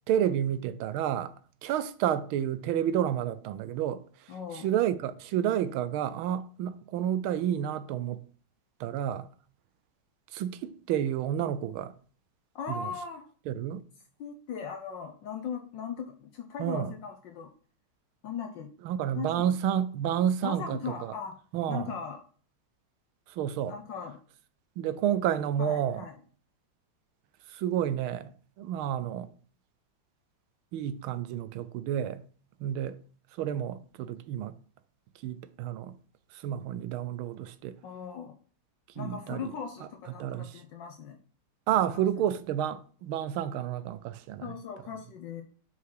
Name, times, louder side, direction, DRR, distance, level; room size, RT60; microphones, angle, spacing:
voice 1, 0.1-1.3 1.6-8.2 8.8-9.3 10.3-11.9 12.7-12.9 13.5-13.8 16.6-16.9 18.8-21.1 21.5-21.9 23.3-23.8 24.8-26.0 27.5-28.3 28.6-29.3 30.7-32.2 32.6-33.0 33.4-34.5 35.2-35.9 36.3-37.8 39.0-39.5 40.1-40.6 41.7-44.5, right 10 dB, 80° right, 1.5 m, -30 dB
voice 2, 4.3-4.7 12.5-13.3 14.2-17.5 18.2-18.7 19.1-19.5 20.4-21.4 21.7-22.2 23.7-24.2 25.6-26.1 37.8-38.3 39.0-41.2 41.9-42.0 44.4-45.4, left 6 dB, 65° left, 1.4 m, -38 dB
5.9 x 5.7 x 4.7 m
omnidirectional pair, 2.3 m